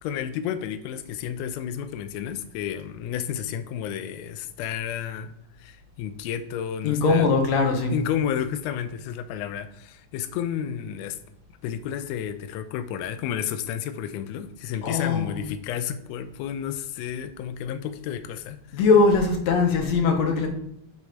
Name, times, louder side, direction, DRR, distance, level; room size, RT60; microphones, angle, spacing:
voice 1, 0.0-5.3 5.6-7.3 7.9-11.2 11.6-18.6, left 9 dB, 90° left, 10 dB, 1.5 m, -31 dB
voice 2, 6.8-7.9 14.8-15.4 18.7-20.5, left 4 dB, 65° left, 3 dB, 2.2 m, -21 dB
7.7 x 4.1 x 5.0 m, 0.77 s
omnidirectional pair, 3.7 m